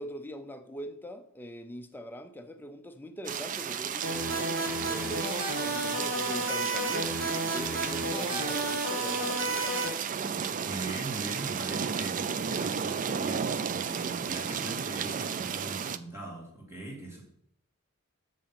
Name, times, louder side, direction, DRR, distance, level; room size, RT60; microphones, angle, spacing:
voice 1, 0.0-5.3 5.6-9.9, equal, 10° left, 0.7 m, -42 dB
sound 1, 3.2-16.0, right 7 dB, 40° right, 0.4 m, -33 dB
sound 2, 4.0-9.9, right 1 dB, 65° right, 2.0 m, -32 dB
voice 2, 10.6-17.2, right 1 dB, 10° right, 2.5 m, -41 dB
7.2 x 6.5 x 5.9 m
head